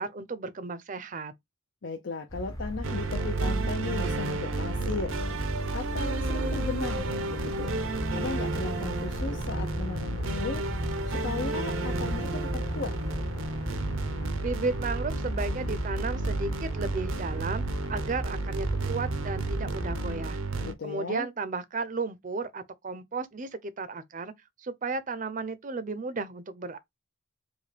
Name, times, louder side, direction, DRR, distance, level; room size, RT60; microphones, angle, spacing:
voice 1, 0.0-1.3 14.4-17.6 17.9-24.3 24.6-26.8, right 4 dB, 40° right, 0.5 m, -34 dB
voice 2, 1.8-5.1 5.7-7.7 8.1-10.6 11.1-13.0 20.6-21.3, left 3 dB, 60° left, 0.6 m, -36 dB
sound 1, 2.3-20.2, equal, 20° left, 0.6 m, -35 dB
sound 2, 2.8-20.7, right 3 dB, 85° right, 0.7 m, -32 dB
5.2 x 2.2 x 3.3 m
head